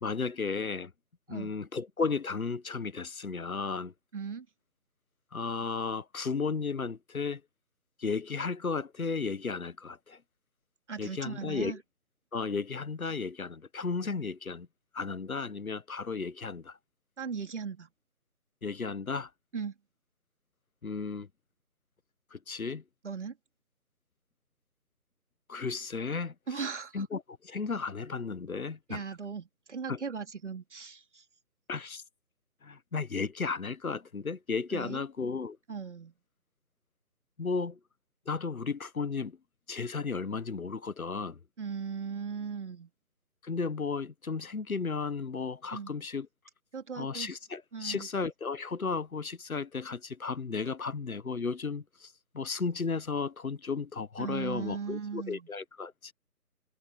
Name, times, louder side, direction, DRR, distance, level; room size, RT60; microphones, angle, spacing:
voice 1, 0.0-0.9 1.3-3.9 5.3-7.4 8.0-10.2 11.0-11.8 12.3-14.7 14.9-16.8 18.6-19.3 20.8-21.3 22.3-22.8 25.5-26.3 26.9-29.0 29.9-30.0 31.7-32.0 32.6-35.6 37.4-37.8 38.3-39.4 39.7-41.4 43.4-46.3 47.0-56.1, left 4 dB, 60° left, 1.4 m, -34 dB
voice 2, 4.1-4.5 10.9-11.8 17.2-17.9 19.5-19.7 23.0-23.4 26.5-27.0 28.9-31.2 34.7-35.0 35.7-36.1 41.6-42.9 45.7-45.9 46.7-47.3 47.7-48.1 54.2-55.5, right 6 dB, 50° right, 3.1 m, -38 dB
figure-of-eight pair, 160°, 47 cm